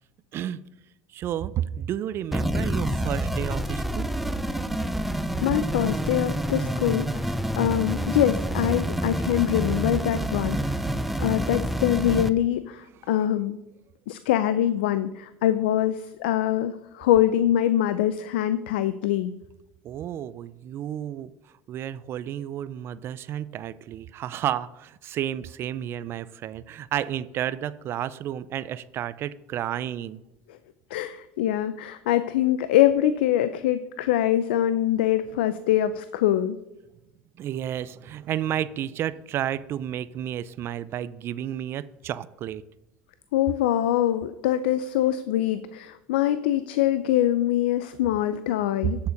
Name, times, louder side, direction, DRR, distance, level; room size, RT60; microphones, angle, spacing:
voice 1, 0.3-0.7 1.1-4.1 19.8-21.3 21.7-30.2 37.4-42.6, right 11 dB, 50° right, 17 dB, 0.5 m, -31 dB
sound 1, 2.3-12.3, right 1 dB, ahead, 0.6 m, -28 dB
voice 2, 5.4-10.8 11.2-13.6 14.1-19.3 30.9-36.6 43.3-49.0, left 12 dB, 90° left, 12 dB, 0.5 m, -24 dB
9.4 x 6.7 x 5.3 m, 0.93 s
supercardioid pair, 105°, 5 cm